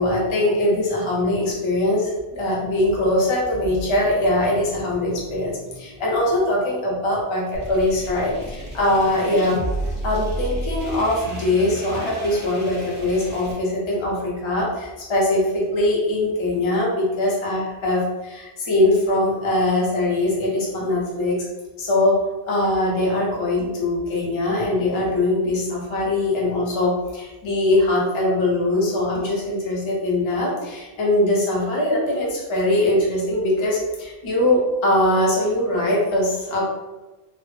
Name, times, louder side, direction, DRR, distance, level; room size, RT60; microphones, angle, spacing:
voice 1, 0.0-9.6 10.0-21.4 21.8-22.2 22.5-36.6, left 1 dB, 35° left, -5 dB, 0.6 m, -22 dB
sound 1, 7.5-13.5, right 1 dB, 15° right, 0.5 m, -32 dB
2.0 x 2.0 x 3.0 m, 1.1 s
omnidirectional pair, 1.0 m